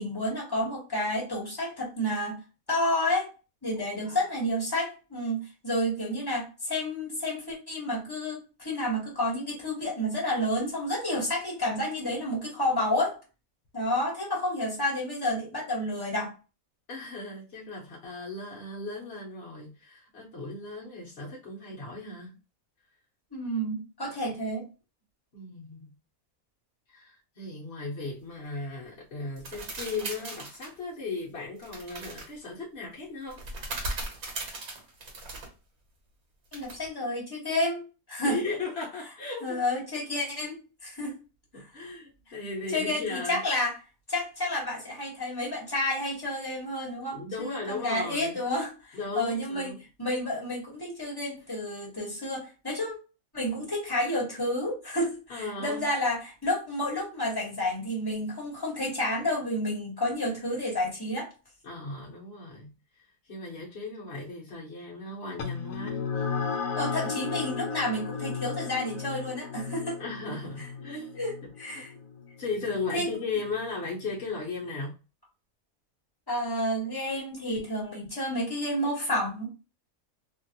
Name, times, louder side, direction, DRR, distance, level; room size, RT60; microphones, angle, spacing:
voice 1, 0.0-2.4 2.7-3.3 3.6-13.2 13.7-16.3 23.3-24.6 36.5-38.3 39.4-41.2 42.7-43.7 44.1-49.7 50.0-52.9 53.3-61.3 66.8-70.0 71.2-71.9 72.9-73.1 76.3-79.5, left 1 dB, 15° left, 1.3 m, -30 dB
voice 2, 3.7-4.3 16.9-22.4 25.3-25.9 26.9-33.4 38.2-39.6 41.5-43.4 47.1-48.4 48.9-49.8 55.3-55.9 61.6-66.3 66.6-66.8 70.0-71.2 71.7-71.8 72.4-74.9, left 3 dB, 50° left, 1.1 m, -37 dB
sound 1, 29.4-30.7 31.6-32.3 33.3-35.5 36.5-36.9, right 2 dB, 75° right, 1.5 m, -38 dB
sound 2, 65.4-74.2, left 5 dB, 70° left, 1.0 m, -35 dB
3.0 x 2.5 x 2.8 m
omnidirectional pair, 1.5 m